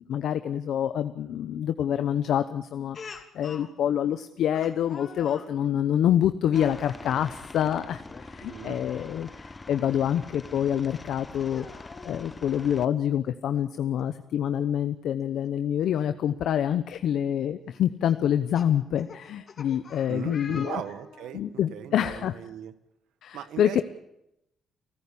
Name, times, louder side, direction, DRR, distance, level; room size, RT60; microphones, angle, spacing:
voice 1, 0.1-11.7 12.0-20.8 21.3-22.4 23.2-23.8, left 10 dB, 75° left, 10 dB, 0.9 m, -26 dB
Speech, 2.9-3.7 4.5-5.5 6.4-6.8 8.0-8.3 8.7-8.8 10.5-10.6 11.4-12.2 13.6-13.7 14.0-14.1 16.0-16.1 16.7-16.9 18.0-21.4, left 5 dB, 45° left, 2.7 m, -45 dB
Aircraft, 6.5-12.8, left 3 dB, 25° left, 1.3 m, -44 dB
voice 2, 8.4-8.8 20.1-22.7 23.3-23.8, right 10 dB, 85° right, 12 dB, 1.5 m, -39 dB
29.5 x 14.5 x 8.6 m, 0.85 s
cardioid pair, 90°, 0 cm